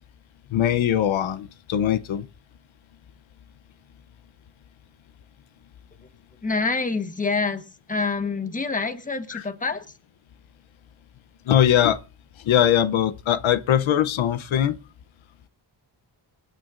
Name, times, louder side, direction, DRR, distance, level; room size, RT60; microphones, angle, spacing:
voice 1, 0.5-2.3 9.3-9.4 11.5-12.0 12.4-14.8, left 10 dB, 85° left, 0.8 m, -21 dB
voice 2, 6.4-7.6 7.9-9.8, left 4 dB, 15° left, 1.2 m, -26 dB
27.0 x 9.2 x 2.5 m
wide cardioid pair, 170°, 46 cm